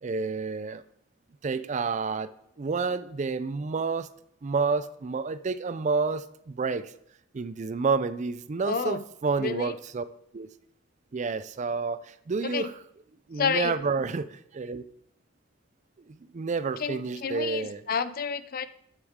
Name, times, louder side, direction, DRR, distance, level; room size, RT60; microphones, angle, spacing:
voice 1, 0.0-0.8 1.4-2.3 2.6-4.1 4.4-6.9 7.3-10.1 10.3-10.5 11.1-12.7 13.3-14.8 16.1-17.8, right 4 dB, 35° right, 14 dB, 0.4 m, -29 dB
voice 2, 8.6-9.0 9.4-9.7 12.4-12.7 13.4-13.8 16.8-18.7, left 6 dB, 45° left, 13 dB, 0.5 m, -30 dB
12.5 x 8.2 x 3.6 m, 0.70 s
head